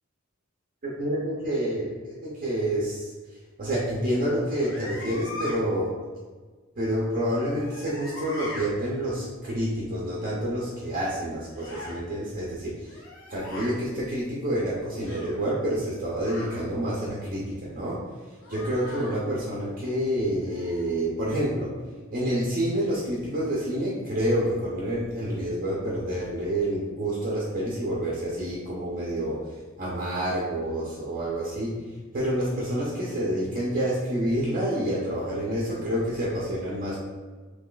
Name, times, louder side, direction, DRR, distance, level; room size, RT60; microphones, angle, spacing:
voice 1, 0.8-3.1 3.6-5.9 6.8-13.0 13.3-18.0 18.5-21.7 22.1-29.4 29.8-31.8 32.1-37.0, right 1 dB, 45° right, -6 dB, 0.7 m, -28 dB
sound 1, 4.5-5.6 7.3-8.7 11.5-12.0 12.8-13.7 15.0-15.4 16.2-16.6 18.4-19.2 20.5-20.9, left 2 dB, 65° left, 0.8 m, -40 dB
3.8 x 3.0 x 2.3 m, 1.4 s
head